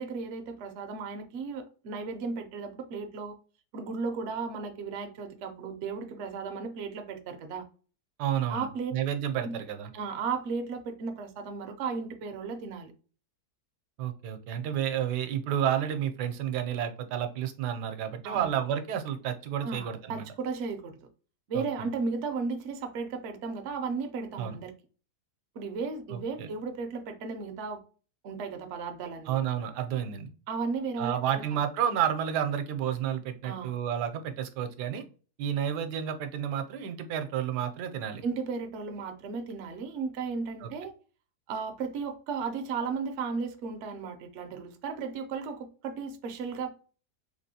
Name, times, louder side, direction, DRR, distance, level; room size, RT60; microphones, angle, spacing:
voice 1, 0.0-3.4 3.7-7.7 8.5-8.9 9.4-9.6 9.9-12.9 18.2-18.5 19.6-21.1 21.5-24.7 25.5-27.8 28.2-29.4 30.5-31.6 33.4-33.8 38.2-40.9 41.5-46.7, right 5 dB, 65° right, 0.7 m, -35 dB
voice 2, 8.2-9.9 14.0-20.2 21.5-21.9 24.4-24.6 26.1-26.5 29.3-30.3 31.0-35.0 35.4-38.2 40.6-40.7, right 9 dB, 85° right, 1.1 m, -31 dB
3.4 x 2.9 x 2.7 m
omnidirectional pair, 1.7 m